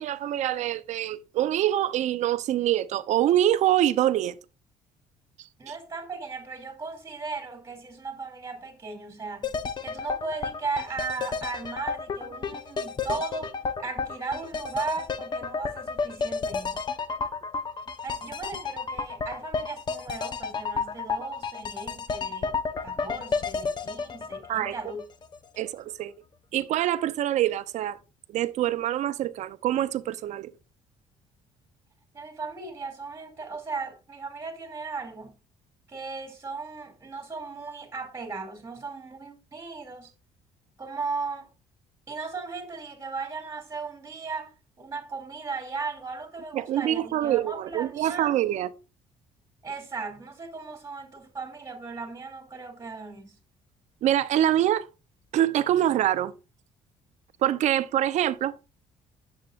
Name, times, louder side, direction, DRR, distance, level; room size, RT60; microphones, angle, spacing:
voice 1, 0.0-4.3 5.7-5.8 24.5-24.8 25.6-26.1 26.5-28.0 28.3-30.5 46.5-48.7 54.0-54.9 55.3-56.3 57.4-58.5, right 12 dB, 65° right, 0.6 m, -25 dB
voice 2, 5.6-9.5 9.8-16.9 18.0-22.6 22.8-25.0 32.1-35.3 35.9-40.1 40.8-41.5 42.1-44.5 44.8-48.3 49.6-53.3, right 4 dB, 20° right, 2.6 m, -36 dB
sound 1, 9.4-25.4 25.7-25.8, left 5 dB, 35° left, 0.9 m, -32 dB
10.5 x 7.3 x 2.5 m
cardioid pair, 100°, 13 cm